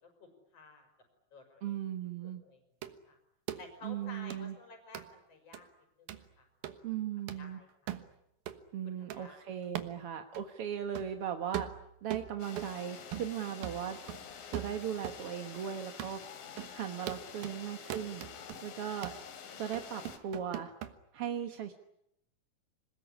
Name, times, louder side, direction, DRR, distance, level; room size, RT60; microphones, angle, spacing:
voice 1, 0.0-0.9 1.3-1.7 2.2-2.6 3.1-3.2 3.6-5.7 6.0-6.5 6.7-6.9 7.4-7.7 8.8-9.4, left 3 dB, 45° left, 5 dB, 6.3 m, -53 dB
voice 2, 1.6-2.4 3.8-4.6 6.8-7.6 8.7-11.7 12.0-14.0 14.5-16.2 16.6-18.2 18.6-19.1 19.6-20.7 21.1-21.7, right 9 dB, 55° right, 6 dB, 1.7 m, -38 dB
sound 1, 2.8-3.0 3.5-3.7 4.3-4.4 4.9-5.1 5.5-5.6 6.1-6.3 6.6-6.8 7.3-7.4 7.9-8.1 8.5-8.6 9.1-9.2 9.8-10.0 10.3-10.5 11.0-11.2 11.5-12.8 13.1-13.4 13.6-15.2 15.5-15.6 16.0-16.2 16.6-16.7 17.1-17.6 17.9-18.6 19.0-19.2 19.7-20.9, right 12 dB, 80° right, 3.1 m, -40 dB
sound 2, 12.4-20.2, left 7 dB, 75° left, 4.0 m, -48 dB
26.5 x 20.5 x 9.9 m, 0.80 s
omnidirectional pair, 4.1 m